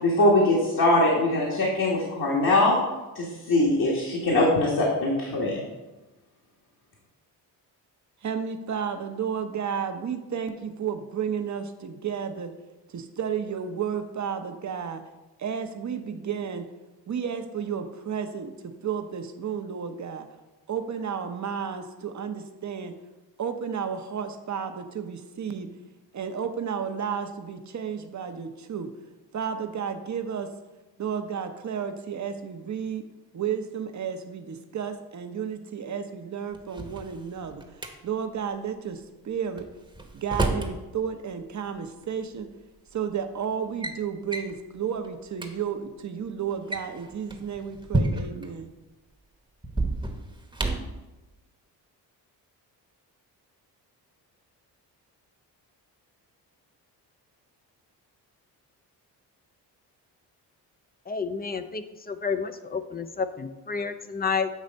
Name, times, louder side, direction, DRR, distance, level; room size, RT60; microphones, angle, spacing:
voice 1, 0.0-2.8 3.1-5.6, left 2 dB, 55° left, -3 dB, 1.6 m, -22 dB
voice 2, 8.2-12.5 12.9-15.0 15.4-16.7 17.1-20.3 20.7-22.9 23.4-25.7 26.1-28.9 29.3-30.5 31.0-33.0 33.3-37.6 38.0-39.7 40.1-42.5 42.9-48.7, right 7 dB, 40° right, 7 dB, 0.8 m, -32 dB
Drawer open or close, 36.5-37.9 39.6-40.7 42.0-42.1 42.9-43.2 43.5-44.0 44.3-44.6 45.0-45.1 45.3-45.5 46.5-48.5 49.6-51.0, right 2 dB, 10° right, 1.0 m, -30 dB
voice 3, 61.1-64.5, left 5 dB, 25° left, 10 dB, 0.5 m, -30 dB
8.3 x 3.2 x 5.2 m, 1.1 s
cardioid pair, 75°, 42 cm